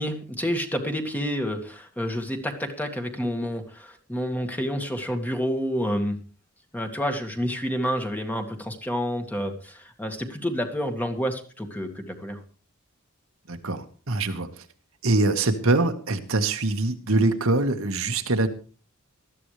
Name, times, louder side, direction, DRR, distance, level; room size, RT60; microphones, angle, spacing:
voice 1, 0.0-6.2 6.7-12.4, equal, 10° left, 5 dB, 2.0 m, -29 dB
voice 2, 13.5-14.6 15.0-18.5, right 2 dB, 70° right, 6 dB, 1.6 m, -24 dB
19.5 x 13.5 x 3.3 m, 0.38 s
head